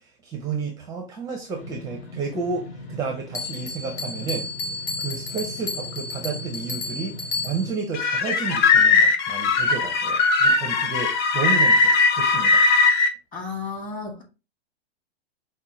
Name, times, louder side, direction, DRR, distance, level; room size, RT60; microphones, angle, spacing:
voice 1, 0.0-4.5 5.0-12.6, right 5 dB, 10° right, 0.5 m, -31 dB
sound 1, 1.5-7.7, equal, 65° left, 1.2 m, -40 dB
Bell, 3.3-7.9, left 3 dB, 85° left, 1.2 m, -32 dB
sound 2, 7.9-13.1, left 4 dB, 50° left, 0.7 m, -19 dB
voice 2, 13.3-14.2, left 4 dB, 25° left, 1.5 m, -33 dB
5.3 x 2.1 x 3.0 m
hypercardioid pair, 120°, 32 cm